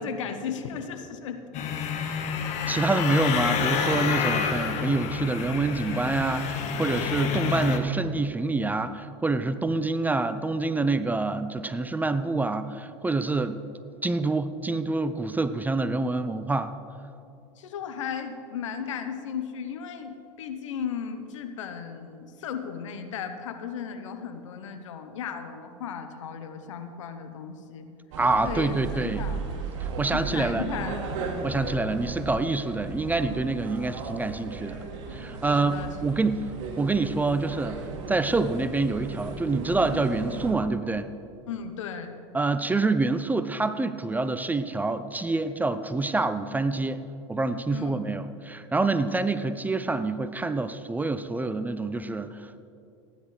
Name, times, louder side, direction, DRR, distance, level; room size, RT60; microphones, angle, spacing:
voice 1, 0.0-1.8 3.4-3.5 17.6-27.9 28.4-29.4 30.0-31.1 35.6-35.9 41.5-42.1 47.7-48.0, left 7 dB, 80° left, 7 dB, 1.0 m, -35 dB
sound 1, 1.5-7.8, left 6 dB, 45° left, 1.3 m, -28 dB
voice 2, 2.7-13.6 14.0-16.7 28.2-29.2 29.8-30.7 31.4-34.8 35.1-36.5 36.8-37.8 38.1-41.1 42.3-47.0 47.3-52.7, right 3 dB, 10° right, 12 dB, 0.4 m, -27 dB
sound 2, 28.1-40.5, right 3 dB, 65° right, 1.8 m, -35 dB
16.0 x 10.0 x 3.3 m, 2.6 s
hypercardioid pair, 95°, 16 cm